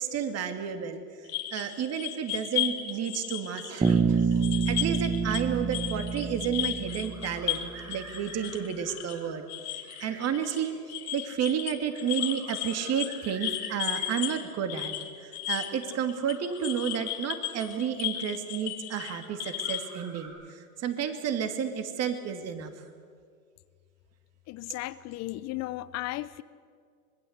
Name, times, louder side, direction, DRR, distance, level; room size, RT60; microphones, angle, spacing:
voice 1, 0.0-9.5 10.0-10.7 11.1-22.8, right 8 dB, 30° right, 7 dB, 2.6 m, -31 dB
sound 1, 1.3-5.4 5.7-19.9, left 14 dB, 65° left, 2.5 m, -35 dB
Bass guitar, 3.8-7.7, right 5 dB, 10° right, 1.2 m, -27 dB
sound 2, 5.4-18.3 19.0-20.3, right 3 dB, 80° right, 8.0 m, -52 dB
voice 2, 24.5-26.4, left 17 dB, 35° left, 17 dB, 0.8 m, -35 dB
25.5 x 20.5 x 8.2 m, 2.1 s
hypercardioid pair, 115°, 46 cm